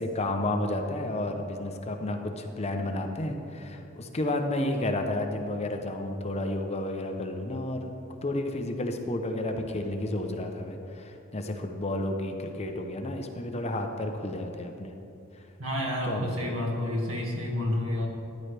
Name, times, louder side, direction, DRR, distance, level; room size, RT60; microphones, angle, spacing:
voice 1, 0.0-7.9 8.2-14.9 16.0-16.6, left 1 dB, 30° left, 4 dB, 0.7 m, -31 dB
voice 2, 15.6-18.1, left 1 dB, 85° right, -1 dB, 2.0 m, -29 dB
13.5 x 10.0 x 3.4 m, 2.7 s
head